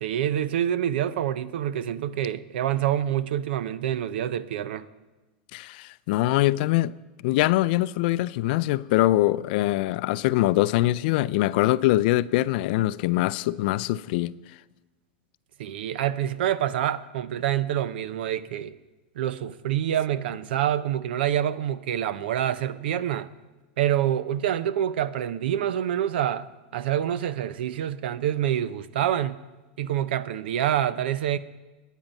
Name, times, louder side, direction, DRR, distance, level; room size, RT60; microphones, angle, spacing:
voice 1, 0.0-4.9 15.6-18.7 19.2-23.3 23.8-26.5 26.7-29.4 29.8-31.4, right 11 dB, 75° right, 0.7 m, -26 dB
voice 2, 5.5-6.9 7.2-14.3, left 16 dB, 60° left, 0.4 m, -23 dB
22.0 x 9.2 x 5.4 m
supercardioid pair, 125°, 6 cm